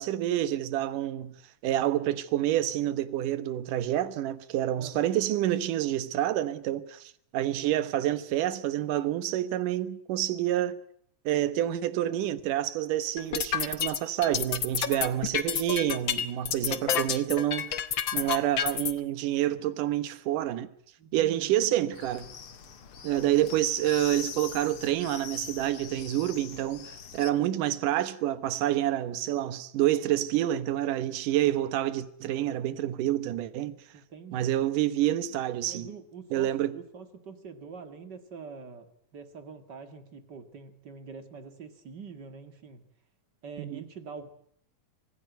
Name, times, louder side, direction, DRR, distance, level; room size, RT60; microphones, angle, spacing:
voice 1, 0.0-1.4 1.6-10.8 11.3-17.8 18.1-20.7 21.1-22.3 23.0-33.8 34.3-35.9 36.3-36.8 43.6-43.8, right 13 dB, 75° right, 2.7 m, -28 dB
voice 2, 4.8-5.2 21.0-21.5 23.1-23.5 33.9-34.5 35.6-38.9 39.1-42.8 43.4-44.3, right 5 dB, 35° right, 2.2 m, -45 dB
sound 1, 13.2-18.9, left 9 dB, 65° left, 1.2 m, -29 dB
sound 2, 21.9-27.3, left 7 dB, 50° left, 2.1 m, -43 dB
25.0 x 17.5 x 9.4 m
omnidirectional pair, 3.9 m